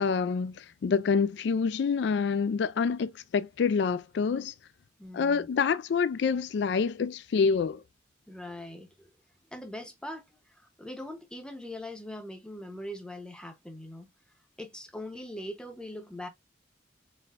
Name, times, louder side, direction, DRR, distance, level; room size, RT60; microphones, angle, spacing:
voice 1, 0.0-4.5 5.1-7.8, left 5 dB, 65° left, 0.3 m, -27 dB
voice 2, 5.0-5.5 8.3-9.1 9.5-14.1 14.6-16.3, left 1 dB, 5° left, 0.8 m, -41 dB
4.4 x 4.1 x 2.4 m
head